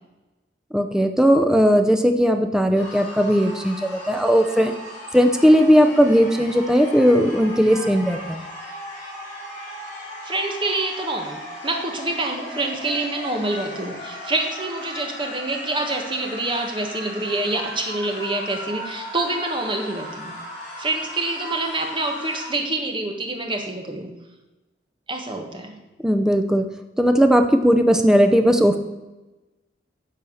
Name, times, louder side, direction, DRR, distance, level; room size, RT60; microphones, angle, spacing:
voice 1, 0.7-4.7 5.1-8.4 26.0-26.6 27.0-28.8, equal, 5° right, 5 dB, 0.6 m, -17 dB
sound 1, 2.7-22.5, left 1 dB, 40° left, 3.9 m, -37 dB
voice 2, 10.2-20.3 20.8-24.1 25.1-25.8, right 2 dB, 25° right, 3 dB, 1.4 m, -26 dB
10.5 x 4.6 x 7.1 m, 1.1 s
head